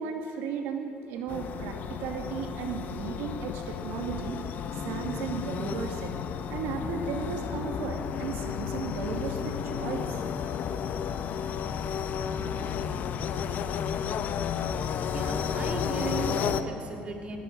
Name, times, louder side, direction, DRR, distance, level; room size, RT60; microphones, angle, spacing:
voice 1, 0.0-4.4 4.7-6.1 6.5-10.2, right 6 dB, 85° right, 4 dB, 2.7 m, -35 dB
sound 1, 1.3-16.6, left 7 dB, 55° left, 1.3 m, -32 dB
voice 2, 15.1-17.4, right 3 dB, 35° right, 3 dB, 3.5 m, -35 dB
21.0 x 18.0 x 9.5 m, 2.8 s
cardioid pair, 135°, 4 cm